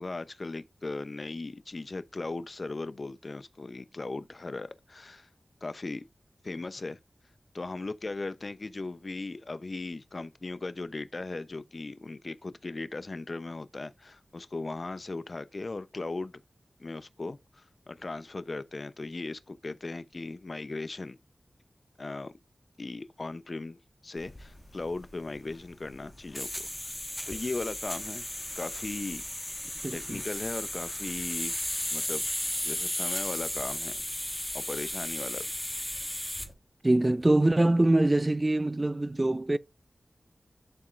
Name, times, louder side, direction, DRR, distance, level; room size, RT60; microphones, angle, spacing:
voice 1, 0.0-5.3 5.6-6.1 6.4-7.0 7.5-16.3 16.8-21.2 22.0-22.3 22.8-23.8 24.0-26.9 27.3-28.2 28.5-29.2 29.9-31.6 31.9-32.2 32.6-34.0 34.5-35.4, left 3 dB, 55° left, 0.7 m, -38 dB
sound 1, 24.2-36.5, left 1 dB, 15° left, 1.5 m, -35 dB
voice 2, 29.8-30.2 36.8-39.6, right 2 dB, 35° right, 0.6 m, -24 dB
11.5 x 4.3 x 2.6 m
cardioid pair, 45°, 0 cm